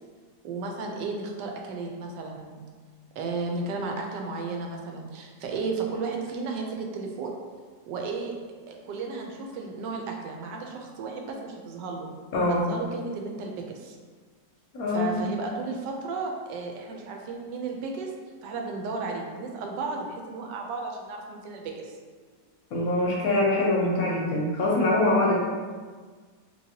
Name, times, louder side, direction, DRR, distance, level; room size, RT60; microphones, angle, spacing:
voice 1, 0.4-2.6 3.2-7.4 7.9-8.3 8.7-12.1 12.5-14.0 14.9-18.1 18.4-21.9, right 4 dB, 85° right, 1 dB, 1.2 m, -34 dB
voice 2, 12.3-12.6 14.7-15.3 22.7-25.4, left 2 dB, 70° left, -3 dB, 1.0 m, -24 dB
3.1 x 2.8 x 2.7 m, 1.5 s
omnidirectional pair, 1.9 m